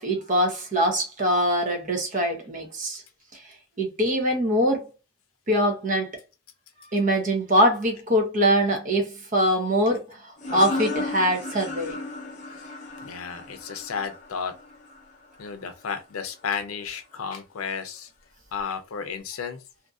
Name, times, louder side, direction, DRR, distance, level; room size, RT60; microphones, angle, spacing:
voice 1, 0.0-3.0 3.8-4.9 5.5-6.1 6.9-10.2 10.5-12.0, equal, 35° right, 0.8 m, -23 dB
sound 1, 10.4-15.7, left 2 dB, 35° left, 0.6 m, -35 dB
voice 2, 13.0-14.5 15.4-18.1 18.5-19.6, left 6 dB, 85° left, 0.5 m, -33 dB
2.6 x 2.6 x 2.4 m
head